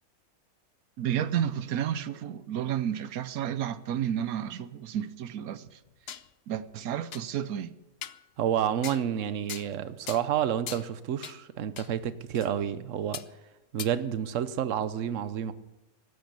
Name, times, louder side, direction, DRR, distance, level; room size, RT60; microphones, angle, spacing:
voice 1, 1.0-5.8 6.5-7.7, right 10 dB, 85° right, 1.2 m, -31 dB
sound 1, 5.7-6.3 6.7-6.8 7.1-7.2 8.0-8.2 8.8-9.1 9.5-9.8 10.1-10.3 10.7-10.9 11.2-11.4 11.8-11.9 12.3-12.5 13.1-13.3 13.8-13.9, left 9 dB, 55° left, 0.8 m, -40 dB
voice 2, 8.4-13.2 13.7-15.5, right 9 dB, 65° right, 1.1 m, -29 dB
14.0 x 10.5 x 8.3 m
omnidirectional pair, 1.5 m